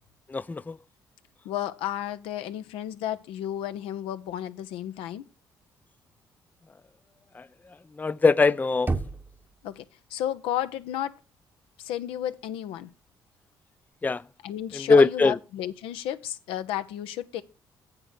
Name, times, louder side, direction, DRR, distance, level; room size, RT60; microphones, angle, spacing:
voice 1, 0.3-0.7 8.0-8.9 14.0-14.2 14.7-15.3, left 4 dB, 20° left, 0.4 m, -21 dB
voice 2, 1.4-5.3 9.6-9.8 10.1-11.2 11.8-12.9 14.4-17.4, left 11 dB, 75° left, 0.7 m, -32 dB
Knock, 8.9-9.8, right 3 dB, 20° right, 0.9 m, -31 dB
7.9 x 5.9 x 6.6 m
hypercardioid pair, 50°, 9 cm